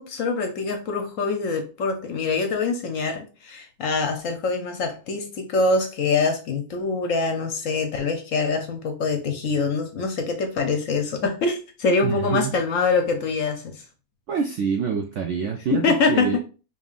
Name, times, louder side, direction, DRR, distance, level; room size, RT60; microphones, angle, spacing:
voice 1, 0.0-13.8 15.7-16.4, left 4 dB, 60° left, 5 dB, 0.9 m, -24 dB
voice 2, 12.0-12.5 14.3-16.4, right 6 dB, 75° right, 4 dB, 0.7 m, -26 dB
5.3 x 3.0 x 2.4 m, 0.34 s
omnidirectional pair, 1.8 m